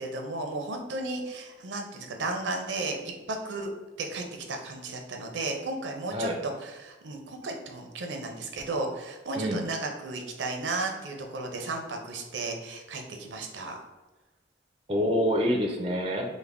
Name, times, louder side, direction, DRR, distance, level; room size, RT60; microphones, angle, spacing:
voice 1, 0.0-3.7 4.0-13.8, right 2 dB, 85° right, 3 dB, 0.6 m, -34 dB
voice 2, 14.9-16.3, equal, 30° right, 1 dB, 0.4 m, -26 dB
3.3 x 2.1 x 3.5 m, 1.2 s
head